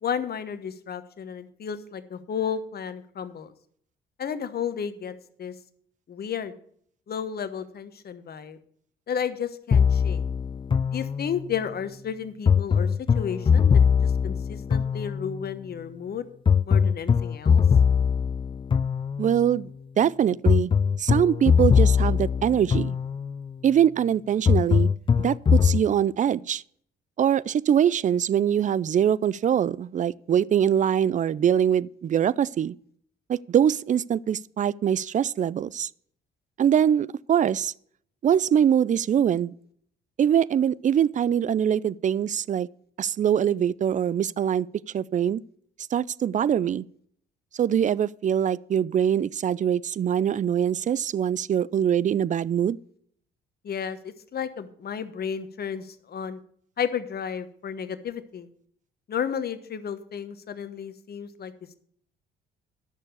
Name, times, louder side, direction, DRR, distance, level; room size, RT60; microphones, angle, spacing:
voice 1, 0.0-3.5 4.2-5.5 6.1-6.5 7.1-8.6 9.1-10.2 10.9-16.3 16.6-17.6 53.6-56.4 56.8-58.5 59.1-61.5, left 7 dB, 50° left, 1.2 m, -32 dB
sound 1, 9.7-11.6 12.5-15.5 16.5-19.5 20.5-23.5 24.5-25.8, left 6 dB, 25° left, 0.4 m, -21 dB
voice 2, 19.2-19.7 20.0-20.7 21.0-23.0 23.6-24.9 25.2-26.6 27.2-32.7 33.3-35.9 36.6-37.7 38.2-39.5 40.2-42.7 43.0-44.7 44.9-45.4 45.9-46.8 47.6-52.8, right 9 dB, 40° right, 0.4 m, -23 dB
11.0 x 6.8 x 6.7 m
hypercardioid pair, 55°, 20 cm